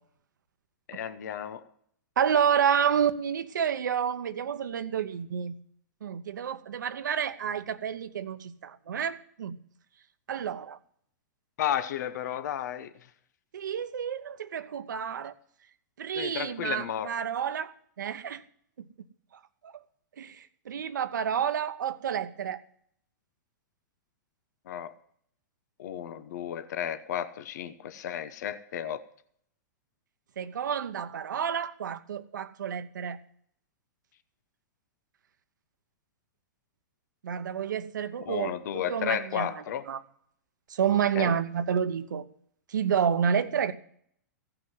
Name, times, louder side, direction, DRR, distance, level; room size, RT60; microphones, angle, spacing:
voice 1, 0.9-1.6 11.6-12.9 16.2-17.1 24.7-24.9 25.8-29.0 38.3-39.8 41.1-41.3, left 10 dB, 70° left, 0.9 m, -33 dB
voice 2, 2.2-5.5 6.0-9.6 10.3-10.8 13.5-15.3 16.0-18.4 19.6-19.8 20.2-22.6 30.4-33.2 37.2-40.0 40.7-42.3 42.7-43.7, right 8 dB, 85° right, 1.0 m, -29 dB
15.5 x 6.0 x 9.4 m
hypercardioid pair, 130°, 10 cm